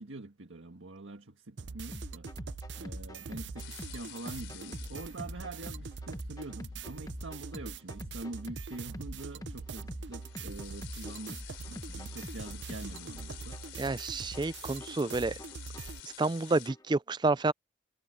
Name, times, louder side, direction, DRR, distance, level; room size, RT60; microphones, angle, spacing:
voice 1, 0.0-2.3 2.8-13.9, right 2 dB, 85° right, 1.6 m, -45 dB
sound 1, 1.6-16.0, right 4 dB, 60° right, 0.6 m, -43 dB
sound 2, 1.9-16.9, left 1 dB, 20° left, 1.2 m, -46 dB
sound 3, 3.6-16.7, left 12 dB, 70° left, 4.0 m, -50 dB
voice 2, 13.8-15.3 16.0-17.5, right 3 dB, 20° right, 0.4 m, -29 dB
head